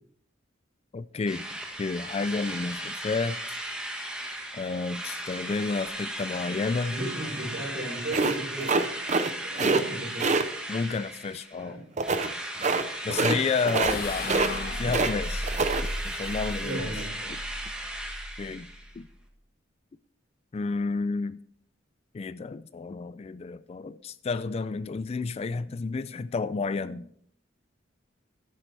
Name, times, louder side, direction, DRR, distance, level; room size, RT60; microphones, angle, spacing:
voice 1, 0.9-1.4 1.8-3.4 4.5-7.0 9.6-9.7 10.7-11.8 13.0-15.5 16.0-17.0 18.4-18.7 19.0-19.1 20.5-21.4 22.1-27.1, left 4 dB, 30° left, 0.3 m, -31 dB
Drill, 1.3-11.6 12.0-18.9, right 1 dB, 5° right, 1.6 m, -36 dB
voice 2, 6.9-8.8 9.4-10.3 11.5-11.8 16.6-17.3, right 1 dB, 60° right, 4.6 m, -35 dB
sound 1, 8.1-9.3 9.6-9.8 10.2-10.4 12.0-12.3 12.6-12.8 13.1-13.4 13.7-14.0 14.2-15.1 15.4-15.8, right 4 dB, 40° right, 0.6 m, -25 dB
sound 2, 13.8-19.2, left 1 dB, 50° left, 1.0 m, -36 dB
12.0 x 10.0 x 3.4 m
head